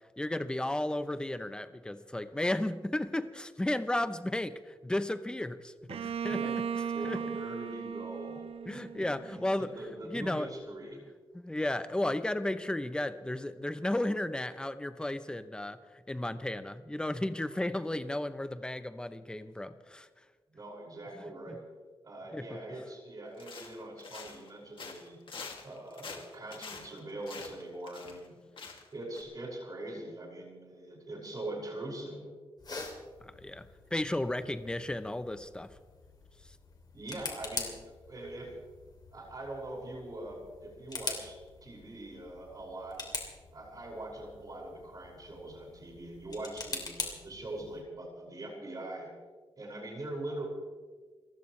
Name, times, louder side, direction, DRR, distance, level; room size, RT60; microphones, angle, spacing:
voice 1, 0.2-6.6 7.0-7.4 8.7-9.7 10.1-10.5 11.3-15.8 16.1-20.1 21.5-21.6 22.3-22.5 33.2-35.7, left 1 dB, 10° left, 12 dB, 0.7 m, -34 dB
Bowed string instrument, 5.9-9.6, right 7 dB, 85° right, 0.5 m, -37 dB
voice 2, 6.9-8.4 8.7-11.0 20.5-21.7 22.0-25.2 25.6-28.4 28.9-32.3 36.9-37.7 38.1-38.5 39.1-43.0 43.5-49.1 49.6-50.5, right 1 dB, 40° right, -3 dB, 5.7 m, -42 dB
sound 1, 23.4-24.5 24.8-28.3 28.6-28.9 29.1-29.2, left 4 dB, 65° left, 2.4 m, -45 dB
sound 2, 32.6-47.8, left 4 dB, 45° left, 2.8 m, -44 dB
29.0 x 15.0 x 3.2 m, 1.5 s
wide cardioid pair, 165°, 10 cm